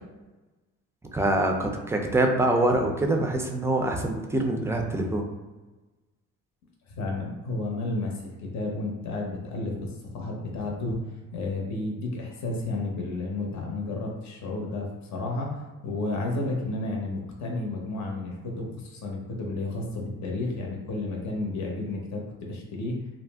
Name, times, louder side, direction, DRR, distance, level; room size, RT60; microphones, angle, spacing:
voice 1, 1.1-5.3, right 1 dB, 10° right, 3 dB, 0.4 m, -25 dB
voice 2, 6.9-11.0 11.3-23.0, left 2 dB, 55° left, 0 dB, 0.7 m, -32 dB
2.4 x 2.0 x 3.3 m, 1.2 s
cardioid pair, 75°, 33 cm